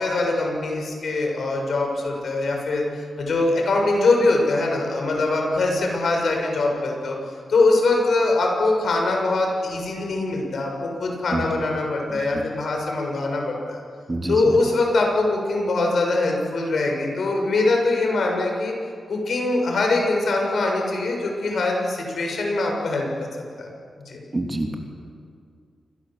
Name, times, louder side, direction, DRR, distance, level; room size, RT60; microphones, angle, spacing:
voice 1, 0.0-7.2 7.5-13.8 14.3-18.7 19.1-23.7 24.0-24.2, left 2 dB, 65° left, 1 dB, 6.9 m, -22 dB
voice 2, 12.1-12.4 14.1-14.5 24.3-24.7, right 2 dB, 25° right, 2 dB, 3.3 m, -27 dB
28.0 x 23.5 x 7.8 m, 2.3 s
wide cardioid pair, 120°, 0 cm